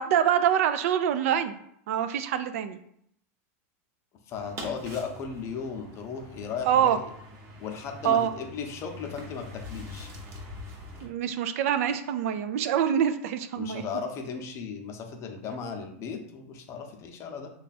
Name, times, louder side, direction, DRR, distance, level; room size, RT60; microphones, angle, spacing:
voice 1, 0.0-1.6 1.9-2.8 6.7-7.0 8.0-8.3 11.0-13.8, right 9 dB, 65° right, 10 dB, 0.4 m, -25 dB
voice 2, 4.3-7.1 7.6-10.1 13.6-17.5, left 5 dB, 35° left, 4 dB, 0.6 m, -36 dB
sound 1, 4.3-11.1, left 1 dB, 35° right, 0.9 m, -44 dB
3.3 x 2.3 x 4.1 m, 0.70 s
supercardioid pair, 130°, 8 cm